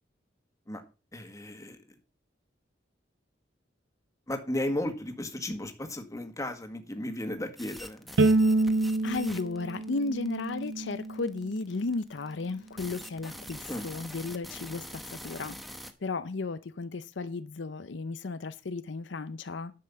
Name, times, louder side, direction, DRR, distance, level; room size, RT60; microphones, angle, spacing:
voice 1, 1.1-1.8 4.3-8.1 13.7-13.9, left 1 dB, 20° left, 1.6 m, -34 dB
sound 1, 7.6-15.9, equal, ahead, 1.1 m, -44 dB
Bowed string instrument, 8.2-11.4, right 2 dB, 75° right, 0.6 m, -27 dB
voice 2, 9.0-15.7 16.0-19.7, left 3 dB, 75° left, 0.6 m, -34 dB
11.0 x 5.6 x 6.9 m
head